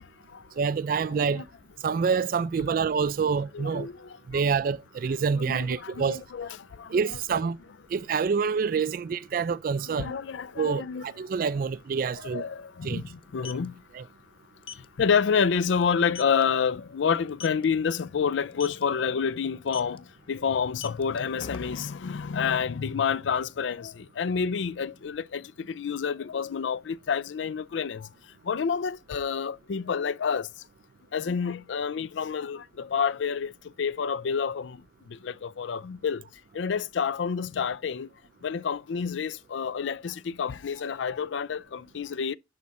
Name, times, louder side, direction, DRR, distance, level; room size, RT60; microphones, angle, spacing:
voice 1, 0.6-1.4 1.8-3.9 4.3-6.2 6.9-7.6 7.9-10.1 10.6-12.4 12.8-13.0 13.9-14.0, right 5 dB, 50° right, 0.3 m, -27 dB
voice 2, 3.5-4.4 5.5-6.5 6.8-7.4 9.9-11.1 12.3-13.8 15.0-28.1 28.5-30.5 31.1-33.5 33.8-34.8 35.1-36.2 36.5-38.1 38.4-42.4, left 6 dB, 85° left, 0.4 m, -29 dB
sound 1, 11.6-11.7 12.0-12.1 13.2-13.7 14.6-14.9 15.3-15.5 15.8-15.9 16.1-16.4 17.3-17.6 18.5-18.8 19.7-20.0 20.6-21.9, left 7 dB, 30° left, 0.5 m, -41 dB
10.5 x 3.6 x 4.1 m
head